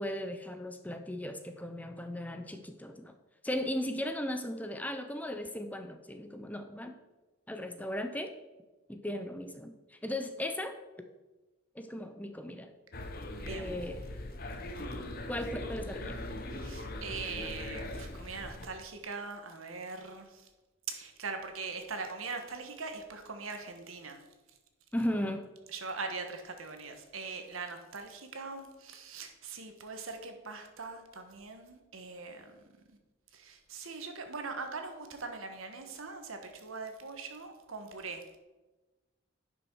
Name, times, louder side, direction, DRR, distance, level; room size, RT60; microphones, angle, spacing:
voice 1, 0.0-3.1 3.4-6.9 7.5-8.3 8.9-10.8 11.7-12.7 13.5-14.0 15.3-16.2 24.9-25.5, left 1 dB, 5° left, 7 dB, 0.5 m, -37 dB
sound 1, 12.9-18.7, left 1 dB, 45° left, 0.8 m, -40 dB
voice 2, 13.4-13.8 14.7-14.8 16.5-20.5 20.9-24.2 25.7-32.6 33.3-38.4, right 4 dB, 80° right, 6 dB, 1.3 m, -41 dB
10.5 x 6.2 x 4.6 m, 1.1 s
head